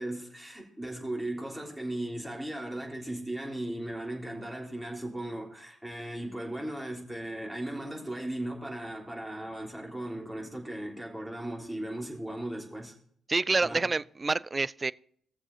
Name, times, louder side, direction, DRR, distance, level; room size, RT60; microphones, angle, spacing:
voice 1, 0.0-12.9 13.6-13.9, right 1 dB, 5° right, 3.3 m, -37 dB
voice 2, 13.3-14.9, right 3 dB, 30° right, 0.3 m, -27 dB
18.5 x 7.0 x 2.8 m
hypercardioid pair, 40°, 0 cm